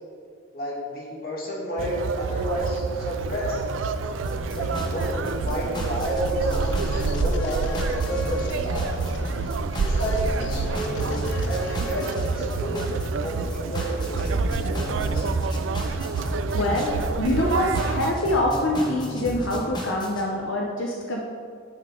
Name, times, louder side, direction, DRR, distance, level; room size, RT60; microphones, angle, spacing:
voice 1, 0.5-3.6 4.5-8.9 9.8-12.9 13.2-15.3, right 1 dB, 50° left, -4 dB, 2.1 m, -30 dB
Conversation, 1.8-18.1, right 4 dB, 85° right, 0.4 m, -28 dB
sound 1, 4.2-20.2, equal, 20° left, 1.0 m, -34 dB
sound 2, 4.6-12.5, left 6 dB, 65° left, 0.3 m, -43 dB
voice 2, 16.5-21.2, left 1 dB, 85° left, -1 dB, 0.7 m, -25 dB
11.0 x 5.7 x 3.7 m, 2.2 s
head